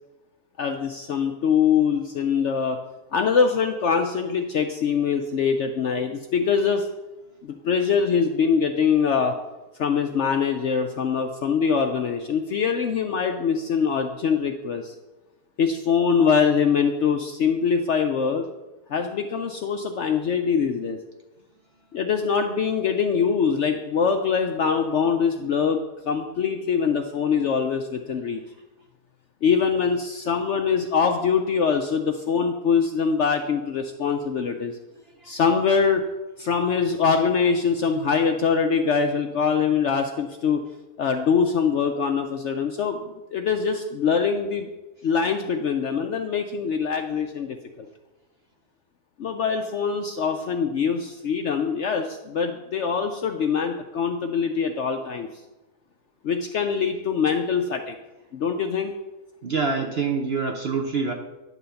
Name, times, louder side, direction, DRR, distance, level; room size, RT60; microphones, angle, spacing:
voice 1, 0.6-2.8 3.1-6.9 7.4-9.4 9.8-14.9 15.6-18.5 18.9-21.0 21.9-28.4 29.4-34.8 35.2-36.0 36.4-40.6 41.0-44.7 45.0-47.9 49.2-55.3 56.2-57.9 58.3-58.9, left 6 dB, 65° left, 5 dB, 0.7 m, -23 dB
voice 2, 59.4-61.1, right 5 dB, 55° right, 4 dB, 0.7 m, -25 dB
11.0 x 3.8 x 6.9 m, 1.1 s
omnidirectional pair, 1.7 m